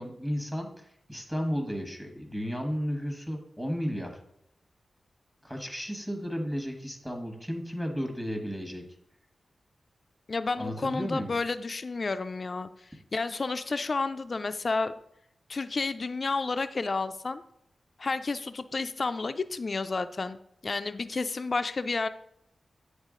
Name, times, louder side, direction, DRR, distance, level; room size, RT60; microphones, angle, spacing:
voice 1, 0.0-4.2 5.4-8.8 10.6-11.3, equal, 10° right, 3 dB, 1.1 m, -33 dB
voice 2, 10.3-14.9 15.5-17.4 18.0-22.1, left 3 dB, 55° left, 11 dB, 0.3 m, -31 dB
8.1 x 3.4 x 3.7 m, 0.74 s
cardioid pair, 55°, 0 cm